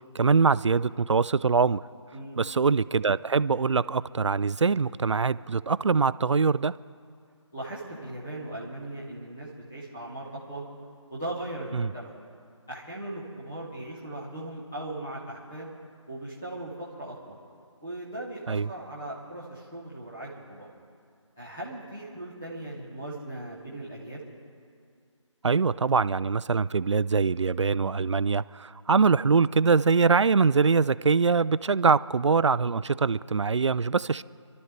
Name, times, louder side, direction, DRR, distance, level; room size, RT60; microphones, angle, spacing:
voice 1, 0.1-1.8 2.4-6.7 11.7-11.9 18.5-18.7 25.4-34.2, right 5 dB, 65° right, 17 dB, 0.4 m, -23 dB
voice 2, 7.5-10.6 11.1-12.1 12.7-15.7 16.1-17.3 17.8-20.7 21.4-24.2, right 1 dB, 5° left, -8 dB, 0.4 m, -38 dB
28.5 x 12.5 x 3.3 m, 2.3 s
figure-of-eight pair, 165°, 16 cm